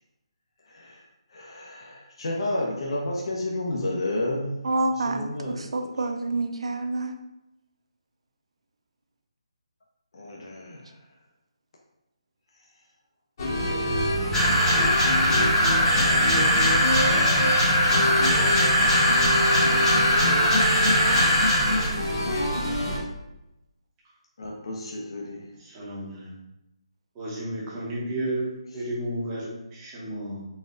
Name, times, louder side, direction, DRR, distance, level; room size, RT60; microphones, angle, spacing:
voice 1, 0.7-4.5 4.9-6.1 10.1-11.0 24.4-25.5, left 1 dB, 55° left, -3 dB, 0.7 m, -32 dB
voice 2, 4.6-7.1, right 2 dB, 65° right, 6 dB, 0.5 m, -28 dB
sound 1, 13.4-23.0, equal, 35° left, 0.9 m, -26 dB
sound 2, 14.3-21.9, left 1 dB, 5° left, 0.7 m, -21 dB
voice 3, 25.6-26.3 27.1-30.4, right 1 dB, 15° right, -7 dB, 1.0 m, -32 dB
4.2 x 2.3 x 3.8 m, 0.91 s
hypercardioid pair, 170°, 3 cm